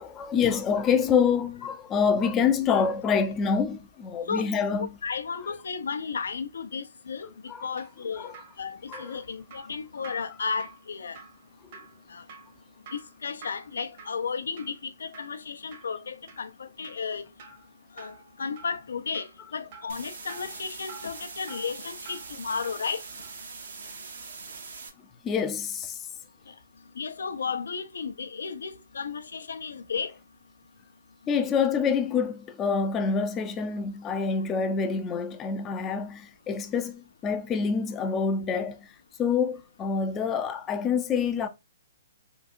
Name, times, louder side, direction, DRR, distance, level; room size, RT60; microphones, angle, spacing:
voice 1, 0.0-5.0 7.5-7.7 8.2-8.4 8.9-9.2 25.2-26.1 31.3-38.9 39.2-41.5, left 6 dB, 15° left, 0.5 m, -26 dB
voice 2, 4.8-7.3 7.6-11.2 12.1-12.2 12.9-17.2 18.0-23.0 26.5-26.6 27.0-30.1, left 5 dB, 85° left, 0.6 m, -34 dB
Drip, 7.5-22.9 23.2-23.4, right 4 dB, 45° right, 1.1 m, -50 dB
sound 1, 19.9-24.9, right 4 dB, 70° right, 1.1 m, -42 dB
3.8 x 2.7 x 2.4 m
hypercardioid pair, 150°, 0 cm